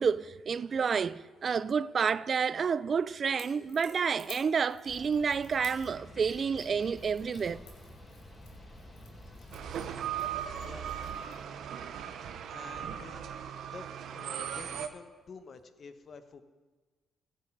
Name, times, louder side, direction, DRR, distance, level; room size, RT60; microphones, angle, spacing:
voice 1, 0.0-7.6, right 6 dB, 50° right, 0.4 m, -29 dB
Crackle / Crack, 3.3-11.4, left 6 dB, 80° left, 2.1 m, -56 dB
sound 1, 4.9-10.9, left 1 dB, 20° left, 4.6 m, -50 dB
sound 2, 9.5-14.9, right 9 dB, 70° right, 0.8 m, -38 dB
voice 2, 12.5-13.3 13.7-13.9 14.1-16.4, left 5 dB, 50° left, 1.1 m, -49 dB
15.0 x 6.8 x 7.5 m
supercardioid pair, 65°, 0 cm